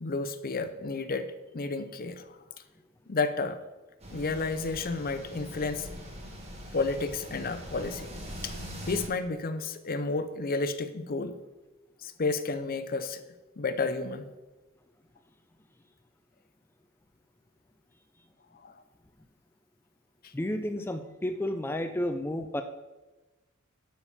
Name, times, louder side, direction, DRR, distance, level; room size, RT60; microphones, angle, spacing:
voice 1, 0.0-2.4 3.1-3.6 4.1-5.9 6.7-8.1 8.4-8.5 8.9-11.4 12.0-13.2 13.6-14.3 18.6-18.8 20.2-20.3, left 3 dB, 45° left, 10 dB, 0.7 m, -31 dB
sound 1, 4.0-9.1, equal, 30° right, 1.8 m, -42 dB
voice 2, 20.3-22.6, left 1 dB, 10° left, 7 dB, 0.4 m, -31 dB
11.5 x 4.3 x 7.2 m, 1.1 s
head